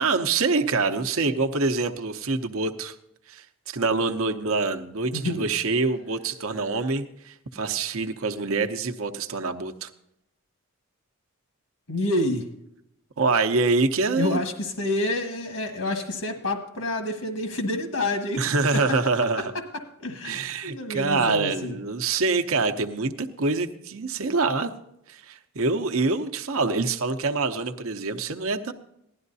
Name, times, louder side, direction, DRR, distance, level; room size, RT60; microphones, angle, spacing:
voice 1, 0.0-3.0 3.3-9.9 13.2-14.4 18.4-19.5 20.2-24.7 25.1-28.7, right 3 dB, 75° right, 7 dB, 0.8 m, -25 dB
voice 2, 5.1-5.5 11.9-12.4 14.2-18.4 20.0-21.7, left 1 dB, 80° left, 4 dB, 1.4 m, -28 dB
16.5 x 11.5 x 2.7 m, 0.79 s
head